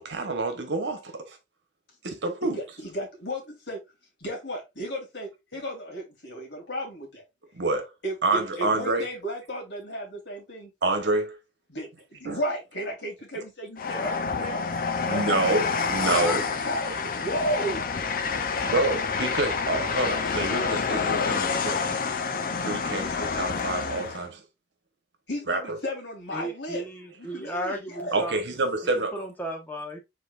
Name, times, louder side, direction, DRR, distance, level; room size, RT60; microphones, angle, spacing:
voice 1, 0.0-1.4 2.0-2.6 7.5-7.9 8.2-9.1 10.8-11.4 12.2-12.4 15.1-16.4 18.6-22.0 22.6-24.4 25.5-25.8 28.1-29.2, right 2 dB, 80° right, 1.1 m, -27 dB
voice 2, 2.4-3.8 4.2-7.2 8.0-10.7 11.7-14.6 16.6-18.0 18.4-18.9 25.3-26.9 27.1-28.2, equal, 80° left, 2.3 m, -34 dB
Train, 13.8-24.3, left 5 dB, 50° left, 0.6 m, -28 dB
voice 3, 16.0-16.4 26.3-28.4 29.1-30.0, equal, 10° left, 1.2 m, -34 dB
5.0 x 4.1 x 2.4 m
head